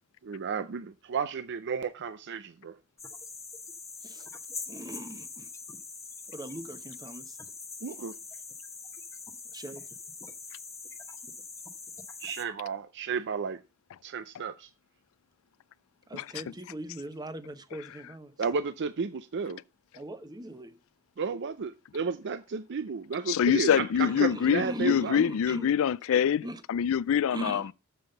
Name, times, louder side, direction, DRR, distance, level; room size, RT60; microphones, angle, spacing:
voice 1, 0.2-2.8 7.8-8.2 12.2-13.6 14.0-14.7 18.4-19.6 21.2-25.2, right 5 dB, 50° right, 0.5 m, -33 dB
sound 1, 3.0-12.5, left 4 dB, 15° left, 0.9 m, -43 dB
voice 2, 4.7-5.5 6.3-7.4 9.3-9.9 16.1-18.3 19.9-20.8 23.9-25.7 26.4-26.6 27.3-27.7, right 1 dB, 20° right, 0.9 m, -40 dB
voice 3, 23.3-27.6, left 8 dB, 65° left, 0.4 m, -25 dB
7.2 x 5.6 x 6.6 m
head